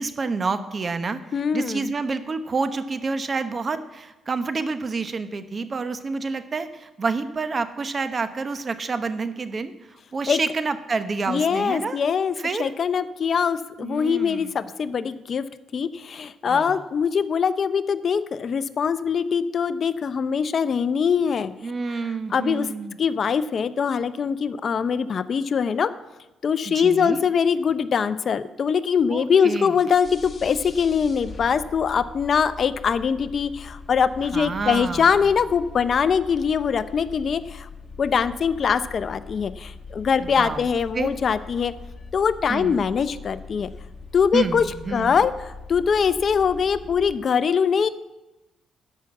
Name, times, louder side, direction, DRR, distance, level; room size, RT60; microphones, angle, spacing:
voice 1, 0.0-1.2 1.5-9.7 10.1-12.0 12.4-12.7 13.8-14.6 16.5-16.8 21.6-23.0 26.7-27.2 29.1-29.8 34.3-35.2 40.2-40.7 40.9-41.1 42.5-42.8 44.3-45.2, right 4 dB, 35° right, 11 dB, 1.0 m, -28 dB
voice 2, 1.3-1.9 10.3-10.4 11.3-15.5 15.7-21.5 22.3-22.7 23.0-25.9 26.4-37.7 38.0-41.7 42.1-43.7 44.1-44.7 44.9-47.9, left 6 dB, 50° left, 14 dB, 0.6 m, -22 dB
sound 1, 30.0-47.2, left 4 dB, 30° left, 1.9 m, -42 dB
13.0 x 6.0 x 8.7 m, 1.0 s
cardioid pair, 90°, 0 cm